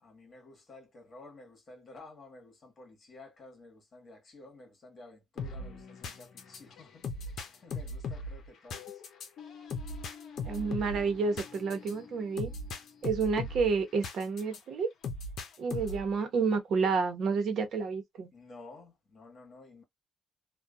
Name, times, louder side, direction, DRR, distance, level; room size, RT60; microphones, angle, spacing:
voice 1, 0.0-9.0 15.7-16.0 18.3-19.8, left 2 dB, 45° left, 1.3 m, -53 dB
sound 1, 5.4-14.6 15.0-16.1, left 3 dB, 70° left, 0.7 m, -39 dB
voice 2, 10.4-12.5 13.0-14.9 15.6-18.3, right 5 dB, 65° right, 0.9 m, -30 dB
2.6 x 2.3 x 2.3 m
cardioid pair, 90°, 0 cm